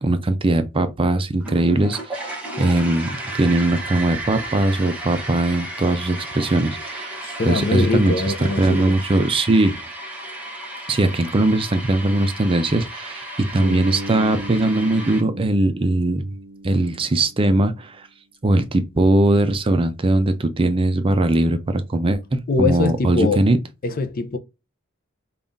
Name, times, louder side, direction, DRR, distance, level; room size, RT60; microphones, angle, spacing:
voice 1, 0.0-7.2 7.5-8.1 8.6-9.8 10.9-16.2 16.6-18.1 18.4-23.6, right 2 dB, 25° right, 0.5 m, -20 dB
sound 1, 1.4-15.2, right 1 dB, 5° right, 1.0 m, -34 dB
voice 2, 7.2-8.9 22.5-23.4 23.8-24.4, left 3 dB, 45° left, 0.5 m, -22 dB
Bass guitar, 13.6-17.7, right 1 dB, 70° right, 0.7 m, -35 dB
5.4 x 2.4 x 2.5 m
head